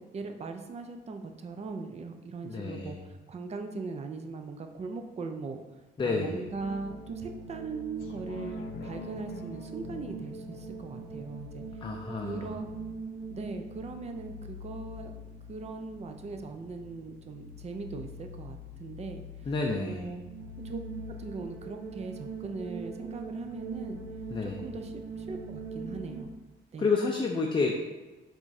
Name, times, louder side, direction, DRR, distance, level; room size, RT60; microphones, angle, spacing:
voice 1, 0.0-5.6 6.0-11.6 12.2-12.7 13.3-15.2 15.5-19.5 19.8-20.2 20.6-20.8 21.1-24.0 24.4-26.3 26.7-26.9, right 4 dB, 35° right, 6 dB, 0.5 m, -40 dB
voice 2, 2.4-3.0 6.0-6.5 11.8-12.5 19.5-20.1 24.3-24.6 26.8-27.8, left 4 dB, 25° left, 1 dB, 0.5 m, -30 dB
sound 1, 6.4-26.2, right 3 dB, 85° right, 0.9 m, -42 dB
sound 2, 8.0-13.0 13.5-13.6, left 5 dB, 80° left, 0.5 m, -47 dB
4.9 x 3.7 x 2.7 m, 1.2 s
cardioid pair, 90°, 20 cm